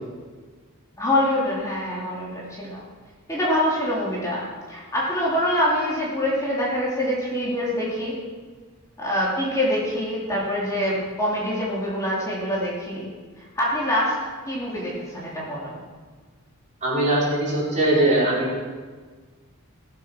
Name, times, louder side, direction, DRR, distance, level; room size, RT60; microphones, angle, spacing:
voice 1, 1.0-2.8 3.3-8.1 9.0-13.1 13.5-14.1 14.5-15.7, left 1 dB, 15° left, -6 dB, 3.2 m, -25 dB
voice 2, 16.8-18.6, right 1 dB, 35° right, -7 dB, 4.8 m, -21 dB
18.0 x 8.2 x 6.0 m, 1.4 s
head